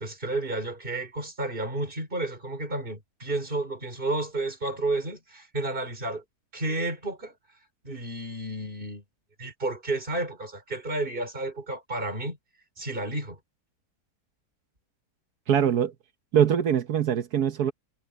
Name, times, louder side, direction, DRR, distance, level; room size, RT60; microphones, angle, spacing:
voice 1, 0.0-6.2 6.5-7.3 7.8-9.0 9.4-12.4 12.8-13.4, right 2 dB, 35° right, 5.1 m, -31 dB
voice 2, 15.5-15.9 16.3-17.7, right 8 dB, 75° right, 1.5 m, -23 dB
omnidirectional pair, 1.7 m